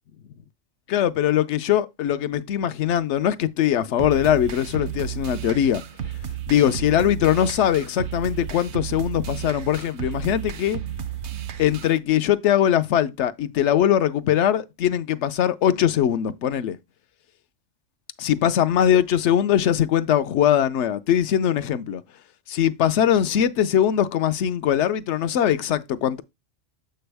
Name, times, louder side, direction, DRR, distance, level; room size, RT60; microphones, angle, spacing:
voice 1, 0.9-5.8 6.5-10.8 11.6-16.8 18.2-22.0 22.5-26.2, left 10 dB, 70° left, 0.9 m, -21 dB
sound 1, 4.0-12.0, right 9 dB, 70° right, 0.9 m, -33 dB
7.9 x 4.5 x 3.4 m
omnidirectional pair, 1.3 m